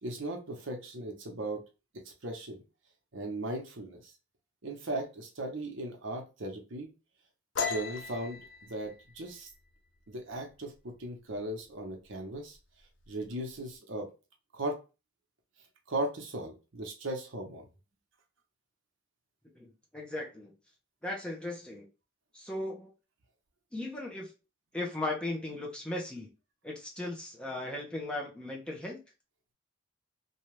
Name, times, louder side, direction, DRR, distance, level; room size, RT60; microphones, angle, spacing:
voice 1, 0.0-1.6 2.2-2.6 3.1-4.0 4.6-6.9 7.6-9.5 10.1-12.6 13.1-14.1 14.5-14.8 15.9-17.6, right 1 dB, 75° right, 2 dB, 0.8 m, -37 dB
sound 1, 7.6-11.0 11.3-11.7 12.0-12.6 12.8-13.6, left 5 dB, 65° left, 0.5 m, -38 dB
voice 2, 19.5-20.5 21.0-21.9 22.3-22.9 23.7-24.3 24.7-26.3 26.6-29.0, left 2 dB, 5° left, -2 dB, 0.7 m, -37 dB
2.7 x 2.3 x 3.1 m, 0.30 s
head